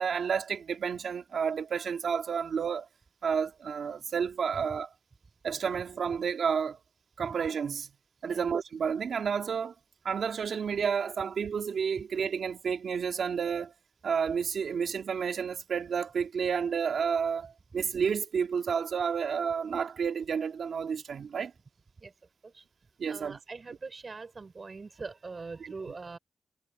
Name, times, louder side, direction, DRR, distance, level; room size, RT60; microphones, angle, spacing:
voice 1, 0.0-2.9 3.2-4.9 5.4-6.8 7.2-7.9 8.2-9.7 10.0-13.7 14.0-21.5 23.0-23.4 25.6-25.7, right 6 dB, 70° right, 2.2 m, -30 dB
voice 2, 23.1-26.2, right 4 dB, 45° right, 5.3 m, -42 dB
cardioid pair, 70°, 0 cm